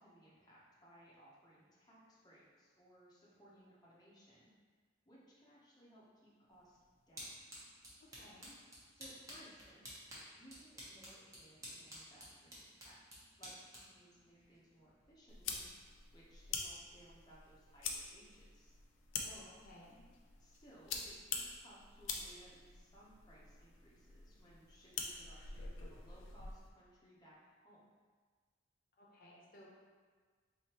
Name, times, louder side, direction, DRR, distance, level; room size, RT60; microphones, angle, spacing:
voice 1, 0.0-4.5 5.1-6.8 7.1-7.4 8.9-13.0 13.4-15.6 16.1-18.7 20.4-27.8, right 1 dB, 20° left, -7 dB, 0.8 m, -62 dB
sound 1, 6.5-15.2, equal, 20° right, 1.0 m, -54 dB
voice 2, 8.0-8.5 19.2-20.0 24.9-25.0 29.0-29.7, left 1 dB, 50° left, -4 dB, 0.8 m, -59 dB
sound 2, 15.3-26.7, left 5 dB, 80° left, 0.4 m, -46 dB
4.0 x 3.1 x 2.9 m, 1.5 s
head